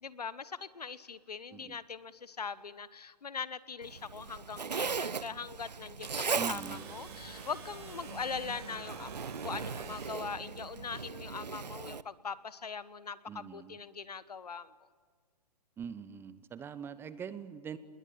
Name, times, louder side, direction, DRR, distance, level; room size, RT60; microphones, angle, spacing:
voice 1, 0.0-9.1 9.4-14.7, left 5 dB, 70° left, 17 dB, 1.2 m, -41 dB
Zipper (clothing), 3.8-12.0, right 5 dB, 80° right, 0.8 m, -39 dB
sound 1, 6.0-10.4, right 5 dB, 40° right, 6.5 m, -49 dB
voice 2, 6.4-6.9 13.3-13.8 15.8-17.8, right 7 dB, 10° right, 15 dB, 0.7 m, -43 dB
27.5 x 21.0 x 9.1 m, 1.6 s
figure-of-eight pair, 125°, 21 cm